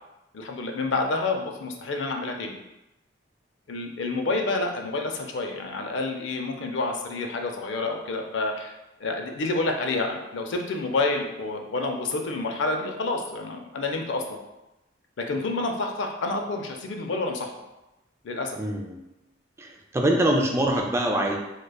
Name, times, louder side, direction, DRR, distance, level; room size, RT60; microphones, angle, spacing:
voice 1, 0.3-2.6 3.7-8.7 9.0-14.4 15.3-17.5 18.2-18.6, left 3 dB, 70° left, 3 dB, 0.5 m, -28 dB
voice 2, 18.6-19.0 19.6-21.4, right 1 dB, 15° right, 1 dB, 0.3 m, -24 dB
4.8 x 2.2 x 2.2 m, 0.96 s
head